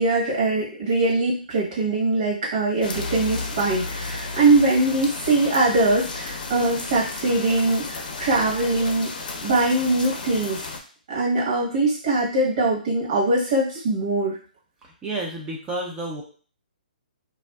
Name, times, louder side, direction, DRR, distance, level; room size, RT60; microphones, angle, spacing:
voice 1, 0.0-9.1 9.4-10.7 11.1-14.4, right 2 dB, 50° right, -5 dB, 1.0 m, -22 dB
sound 1, 2.8-10.8, left 3 dB, 65° left, 0.5 m, -33 dB
voice 2, 14.8-16.2, right 2 dB, 15° right, -2 dB, 0.4 m, -30 dB
2.4 x 2.4 x 2.2 m, 0.41 s
hypercardioid pair, 145°, 5 cm